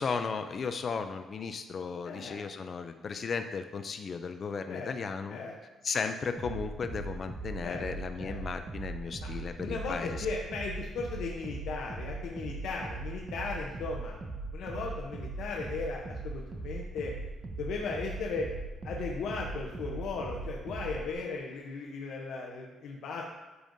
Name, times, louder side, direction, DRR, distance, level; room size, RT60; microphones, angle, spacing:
voice 1, 0.0-5.4 5.8-10.3, left 5 dB, 35° left, 8 dB, 0.3 m, -35 dB
voice 2, 2.0-2.5 4.7-4.9 5.3-5.5 7.6-7.9 8.2-8.4 9.2-9.3 9.6-14.1 14.5-17.1 17.6-18.5 18.8-23.2, left 4 dB, 70° left, -1 dB, 0.8 m, -37 dB
sound 1, 6.4-21.1, right 3 dB, 25° right, 0.7 m, -40 dB
12.5 x 5.2 x 2.6 m, 1.2 s
cardioid pair, 160°, 0 cm